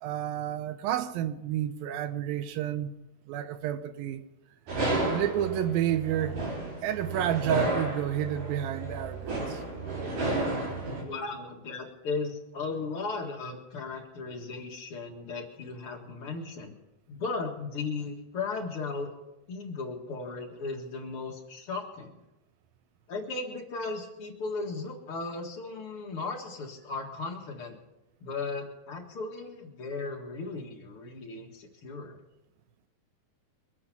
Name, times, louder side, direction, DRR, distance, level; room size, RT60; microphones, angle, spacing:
voice 1, 0.0-2.9 3.3-4.2 5.1-6.4 6.8-9.6, right 11 dB, 75° right, 2.4 m, -30 dB
sound 1, 4.7-11.0, right 2 dB, 55° right, 5.5 m, -32 dB
voice 2, 11.0-16.7 17.1-19.1 19.5-22.2 23.1-27.8 28.2-32.2, left 3 dB, 50° left, 1.9 m, -36 dB
23.5 x 8.7 x 5.9 m
omnidirectional pair, 4.6 m